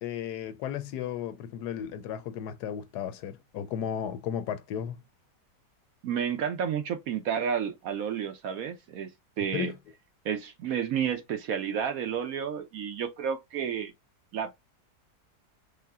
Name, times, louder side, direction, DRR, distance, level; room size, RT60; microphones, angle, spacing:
voice 1, 0.0-5.0 9.5-9.8, left 9 dB, 75° left, 1.2 m, -34 dB
voice 2, 6.0-9.1 9.4-9.7 10.2-13.9 14.3-14.5, right 8 dB, 65° right, 1.0 m, -31 dB
5.5 x 2.1 x 3.5 m
omnidirectional pair, 1.8 m